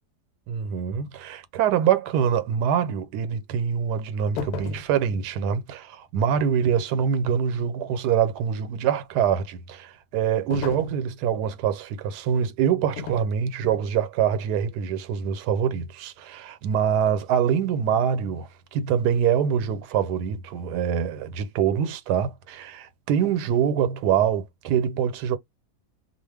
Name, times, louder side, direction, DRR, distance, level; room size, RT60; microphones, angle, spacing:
voice 1, 0.5-25.4, right 8 dB, 85° right, 1.2 m, -24 dB
sound 1, 4.4-4.9 10.5-11.0 13.0-13.3 13.6-13.9, left 4 dB, 80° left, 1.2 m, -33 dB
2.4 x 2.3 x 3.2 m
omnidirectional pair, 1.7 m